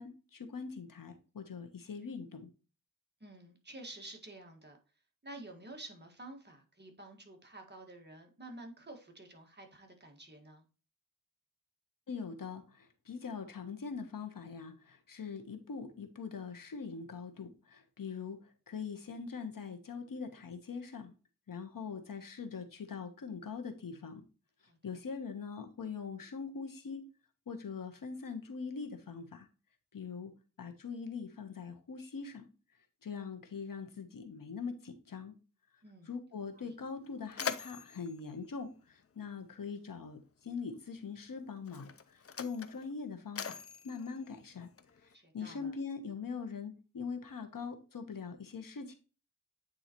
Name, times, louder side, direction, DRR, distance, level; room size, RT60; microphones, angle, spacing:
voice 1, 0.0-2.5 12.1-18.4 18.7-21.1 21.5-24.2 24.8-27.0 27.5-29.5 29.9-30.3 30.6-32.5 33.0-35.3 36.1-44.7 45.3-49.0, left 5 dB, 80° left, 6 dB, 1.1 m, -42 dB
voice 2, 3.2-4.8 5.2-10.6 24.6-25.0 35.8-36.1 36.5-36.7 45.1-45.7, right 2 dB, 30° right, 2 dB, 1.7 m, -50 dB
Mechanisms, 36.4-36.5 36.9-39.6 40.6-40.7 41.6-45.1, left 7 dB, 45° left, 0.5 m, -43 dB
8.8 x 3.9 x 2.9 m, 0.34 s
wide cardioid pair, 95°, 33 cm